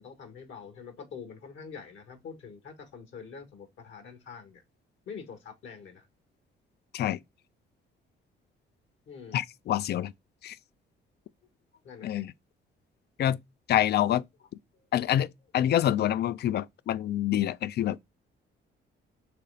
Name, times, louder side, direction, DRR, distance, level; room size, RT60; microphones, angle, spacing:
voice 1, 0.0-4.6 5.1-6.1 9.1-9.4 11.8-12.3, left 6 dB, 75° left, 1.6 m, -45 dB
voice 2, 9.3-10.1 10.4-10.6 12.0-12.3 13.2-13.4 13.7-14.2 14.9-18.0, left 11 dB, 55° left, 0.4 m, -26 dB
4.1 x 3.2 x 3.9 m
cardioid pair, 90°, 20 cm